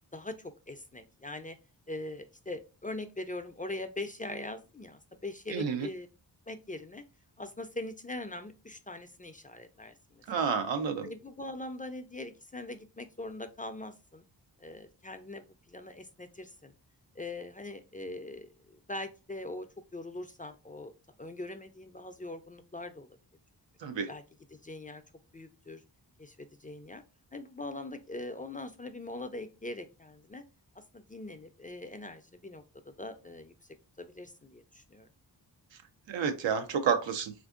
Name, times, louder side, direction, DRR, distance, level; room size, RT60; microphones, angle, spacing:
voice 1, 0.1-1.6 1.9-6.1 6.5-7.0 7.4-10.6 11.0-14.2 14.6-16.7 17.2-20.9 21.2-23.1 24.1-24.2 24.5-25.0 25.3-25.8 26.2-27.0 27.3-30.4 30.8-33.5 34.0-35.1, left 2 dB, 20° left, 8 dB, 0.3 m, -42 dB
voice 2, 5.5-5.9 10.3-11.1 23.8-24.1 36.1-37.3, right 6 dB, 90° right, 8 dB, 0.6 m, -30 dB
3.4 x 2.5 x 2.4 m, 0.30 s
cardioid pair, 55°, 43 cm